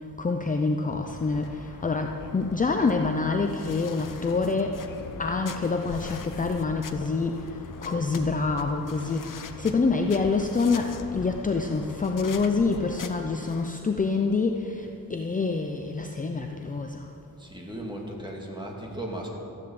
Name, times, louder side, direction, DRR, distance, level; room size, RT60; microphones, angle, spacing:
voice 1, 0.2-4.8 5.2-7.5 7.8-17.1, left 4 dB, 25° left, 4 dB, 0.6 m, -26 dB
sound 1, 1.1-13.7, left 5 dB, 65° left, 0.9 m, -41 dB
voice 2, 17.4-19.3, right 1 dB, 15° right, -1 dB, 2.1 m, -36 dB
13.5 x 11.0 x 7.7 m, 2.9 s
wide cardioid pair, 160°, 35 cm